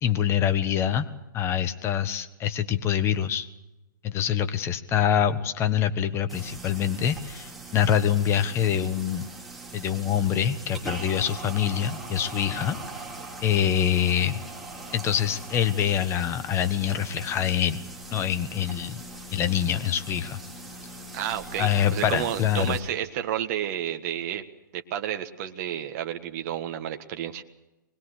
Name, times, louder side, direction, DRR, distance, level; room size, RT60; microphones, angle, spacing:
voice 1, 0.0-1.1 1.3-3.5 4.0-9.3 9.7-12.8 13.4-14.4 14.9-17.8 18.1-19.0 19.3-20.4 21.6-22.8, left 9 dB, 25° left, 10 dB, 1.4 m, -25 dB
sound 1, 6.3-22.8, right 2 dB, ahead, 5.6 m, -41 dB
voice 2, 21.1-24.4 24.7-27.4, right 10 dB, 45° right, 6 dB, 1.6 m, -31 dB
24.5 x 21.0 x 6.6 m, 0.98 s
hypercardioid pair, 125°, 11 cm